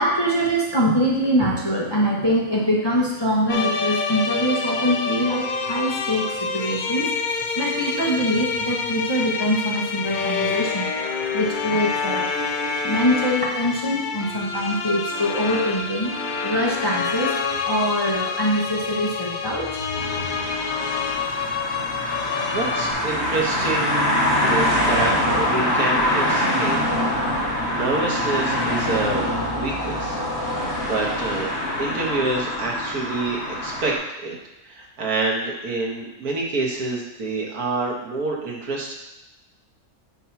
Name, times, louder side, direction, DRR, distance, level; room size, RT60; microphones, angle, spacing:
voice 1, 0.0-7.1 7.6-10.9 11.3-12.3 12.8-16.1 16.4-17.3 17.6-19.8, equal, 20° left, -3 dB, 0.8 m, -23 dB
sound 1, 3.5-22.9, left 5 dB, 75° left, 0.4 m, -27 dB
sound 2, 20.0-34.0, left 1 dB, 50° left, 1.6 m, -24 dB
voice 2, 22.5-24.1 24.4-27.3 27.6-29.3 29.5-30.2 30.5-31.5 31.8-34.4 34.6-38.9, right 3 dB, 85° right, -2 dB, 1.8 m, -27 dB
8.1 x 2.9 x 5.7 m, 0.99 s
omnidirectional pair, 1.5 m